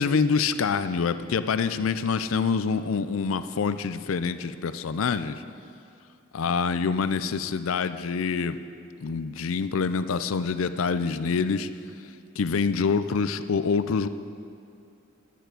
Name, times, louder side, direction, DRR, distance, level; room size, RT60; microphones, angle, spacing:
voice 1, 0.0-5.4 6.3-8.6 9.0-11.7 12.4-14.1, left 5 dB, 85° left, 12 dB, 0.5 m, -26 dB
10.0 x 6.7 x 9.1 m, 2.5 s
head